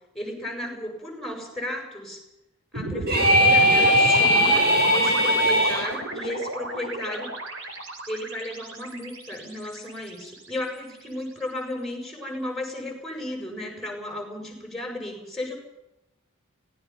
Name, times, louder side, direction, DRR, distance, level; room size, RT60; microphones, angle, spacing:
voice 1, 0.1-2.2 2.7-4.7 4.9-7.3 8.1-15.5, left 1 dB, ahead, 2 dB, 7.2 m, -34 dB
sound 1, 2.7-11.0, right 1 dB, 65° right, 4.3 m, -33 dB
sound 2, 3.1-5.9, equal, 45° right, 7.7 m, -19 dB
25.0 x 19.0 x 5.9 m, 0.91 s
head